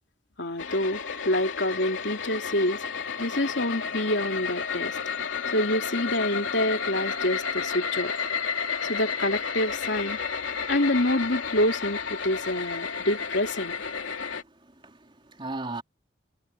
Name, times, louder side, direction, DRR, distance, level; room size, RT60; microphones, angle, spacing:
voice 1, 0.4-2.8 3.2-5.0 5.5-8.1 8.9-10.2 10.7-13.8, left 1 dB, 70° left, 3.1 m, -27 dB
sound 1, 0.6-14.4, left 6 dB, 90° left, 2.9 m, -32 dB
voice 2, 14.3-15.8, right 2 dB, 25° right, 3.6 m, -38 dB
head